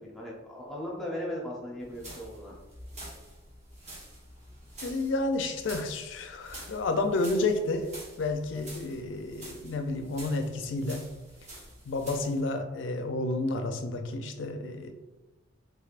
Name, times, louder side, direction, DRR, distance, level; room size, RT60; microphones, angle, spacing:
voice 1, 0.0-2.5, left 1 dB, ahead, -4 dB, 0.7 m, -37 dB
sound 1, 1.8-12.4, right 1 dB, 35° right, 1.1 m, -47 dB
voice 2, 4.8-7.9 8.2-11.0 11.9-14.9, left 2 dB, 70° left, 5 dB, 0.4 m, -30 dB
3.5 x 3.3 x 2.4 m, 1.1 s
head